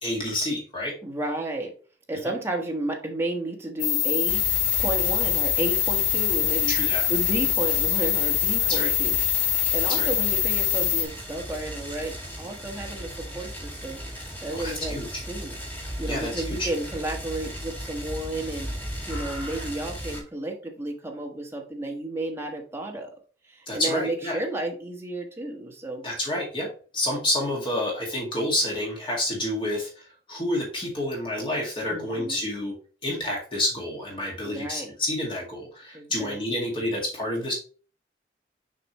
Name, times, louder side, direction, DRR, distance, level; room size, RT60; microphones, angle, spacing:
voice 1, 0.0-0.9 6.7-7.0 8.7-8.9 9.9-10.1 14.5-15.1 16.1-16.7 23.7-24.4 26.0-26.7 26.9-32.7 33.0-37.5, left 1 dB, 30° left, -2 dB, 2.0 m, -29 dB
voice 2, 1.0-1.7 2.1-4.4 4.8-6.7 7.1-15.0 15.3-15.6 16.0-18.7 19.1-23.1 23.5-26.0 31.9-32.4 34.4-34.9 35.9-36.3, right 2 dB, 15° right, 0 dB, 1.4 m, -32 dB
sound 1, 3.8-11.0, left 10 dB, 80° left, 2.2 m, -24 dB
sound 2, 4.3-20.2, equal, 10° left, 2.0 m, -36 dB
6.7 x 5.2 x 3.0 m, 0.40 s
head